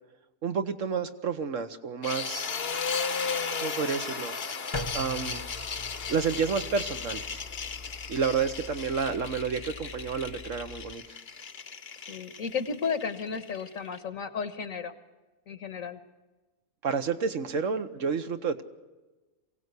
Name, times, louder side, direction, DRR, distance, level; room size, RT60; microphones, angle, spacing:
voice 1, 0.4-2.5 3.6-4.3 4.9-5.4 6.1-7.4 8.1-11.0 16.8-18.6, right 5 dB, 60° right, 9 dB, 1.3 m, -30 dB
sound 1, 2.0-14.0, left 5 dB, 45° left, 1.1 m, -35 dB
sound 2, 4.7-10.9, left 2 dB, 20° left, 0.9 m, -42 dB
voice 2, 12.1-14.9 15.5-16.0, left 6 dB, 65° left, 10 dB, 1.6 m, -33 dB
23.0 x 17.0 x 8.2 m, 1.2 s
omnidirectional pair, 1.5 m